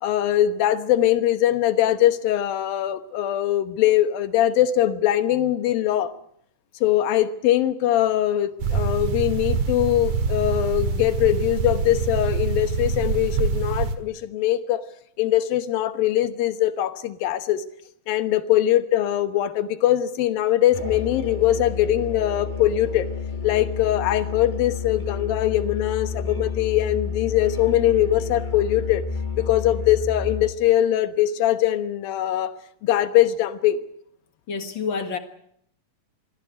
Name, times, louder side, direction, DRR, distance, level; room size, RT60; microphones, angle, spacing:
voice 1, 0.0-6.1 6.8-14.8 15.2-17.6 18.1-23.1 23.4-29.0 29.3-32.5 32.8-33.8, left 12 dB, 75° left, 2.9 m, -22 dB
sound 1, 8.6-14.0, right 5 dB, 60° right, 2.8 m, -25 dB
Musical instrument, 20.7-30.6, left 6 dB, 25° left, 1.1 m, -31 dB
voice 2, 34.5-35.2, left 5 dB, 45° left, 1.6 m, -28 dB
23.5 x 15.5 x 10.0 m
omnidirectional pair, 4.2 m